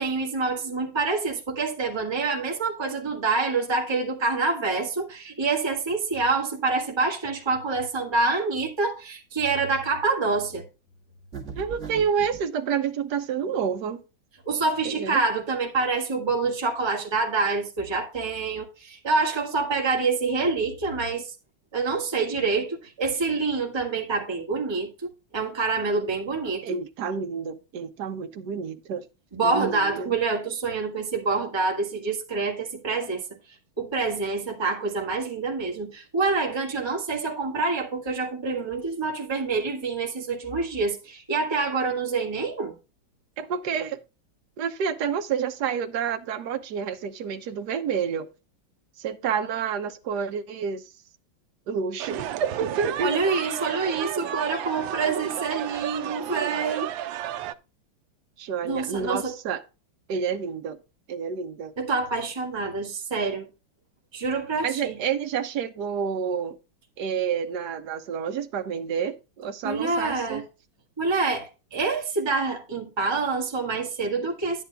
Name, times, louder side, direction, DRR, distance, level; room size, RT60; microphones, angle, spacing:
voice 1, 0.0-10.6 14.4-21.3 21.7-26.8 29.3-33.2 33.8-42.7 53.0-56.9 58.6-59.3 61.8-63.5 64.1-64.9 69.6-70.4 71.0-74.6, right 4 dB, 15° right, 1.7 m, -26 dB
sound 1, 11.3-12.4, right 5 dB, 35° right, 2.4 m, -38 dB
voice 2, 11.5-14.0 14.8-15.2 26.6-29.1 29.4-30.1 43.4-44.0 44.6-48.3 49.0-50.9 51.7-53.1 58.4-59.6 60.1-60.8 61.1-61.7 64.6-66.6 67.0-70.4, right 7 dB, 60° right, 1.4 m, -29 dB
sound 2, 52.0-57.5, right 12 dB, 80° right, 1.3 m, -32 dB
10.5 x 9.5 x 2.3 m
omnidirectional pair, 2.2 m